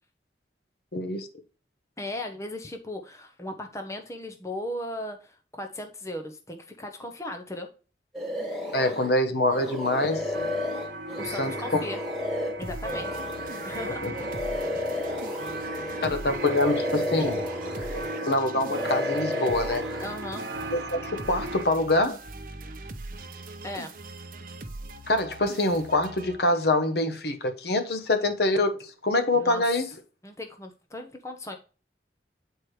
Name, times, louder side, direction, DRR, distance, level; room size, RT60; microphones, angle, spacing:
voice 1, 0.9-1.3 8.7-10.3 11.4-11.8 13.9-14.1 16.0-17.4 17.8-19.8 20.7-22.2 25.1-29.9, left 2 dB, 60° left, 1.0 m, -25 dB
voice 2, 2.0-7.7 11.2-12.0 12.6-13.2 13.6-14.1 20.0-20.4 23.6-23.9 29.3-29.6 30.2-31.6, left 1 dB, 15° left, 0.7 m, -37 dB
sound 1, 8.1-9.1 9.5-16.1 16.4-18.4 18.6-20.1, left 1 dB, ahead, 2.1 m, -32 dB
sound 2, 10.1-21.6, right 2 dB, 75° right, 1.1 m, -37 dB
sound 3, 12.6-26.9, right 2 dB, 45° right, 0.8 m, -42 dB
8.3 x 4.6 x 3.1 m
head